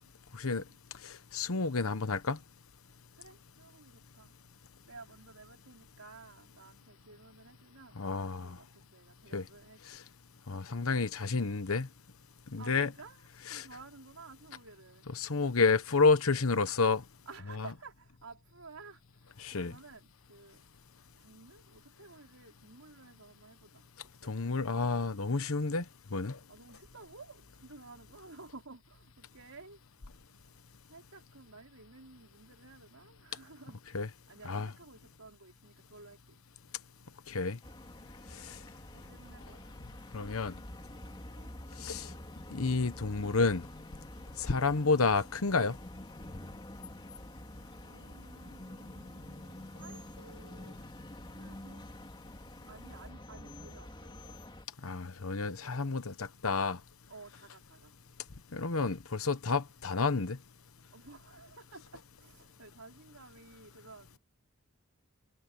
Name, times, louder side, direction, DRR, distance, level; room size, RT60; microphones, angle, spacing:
voice 1, 0.4-0.8 3.1-4.3 4.9-8.0 8.3-10.0 12.6-15.1 17.3-20.6 21.2-23.8 24.2-24.3 26.5-29.8 30.9-33.8 34.3-36.4 38.2-38.6 38.9-39.6 41.3-41.5 47.8-50.8 51.3-51.9 52.7-55.0 55.6-55.8 57.1-58.0 60.9-64.2, right 3 dB, 80° right, 4.7 m, -54 dB
voice 2, 1.0-2.4 8.0-8.6 9.3-9.4 9.9-10.0 10.5-11.9 12.5-12.9 13.5-13.7 15.2-17.0 19.4-19.7 24.3-25.8 26.1-26.4 33.9-34.1 34.4-34.7 37.3-37.6 38.5-38.6 40.1-40.5 41.8-42.1 42.5-43.6 44.4-45.8 54.8-56.8 58.5-60.4, left 4 dB, 70° left, 1.1 m, -30 dB
sound 1, 37.6-54.7, left 1 dB, 20° left, 2.7 m, -48 dB
head